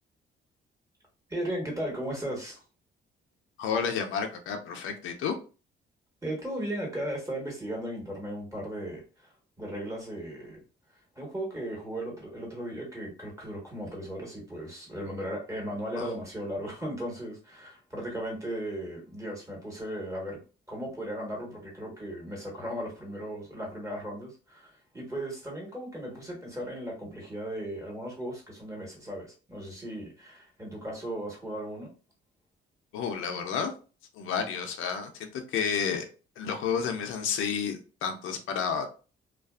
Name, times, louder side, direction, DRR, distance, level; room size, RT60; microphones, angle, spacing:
voice 1, 1.3-2.6 6.2-9.3 9.6-10.6 11.1-20.4 20.7-31.9, right 1 dB, 15° right, -2 dB, 1.2 m, -36 dB
voice 2, 3.6-5.4 16.0-16.1 32.9-33.7 34.2-36.0 36.4-38.9, left 6 dB, 85° left, 5 dB, 0.5 m, -31 dB
2.4 x 2.2 x 2.3 m, 0.35 s
cardioid pair, 90°, 20 cm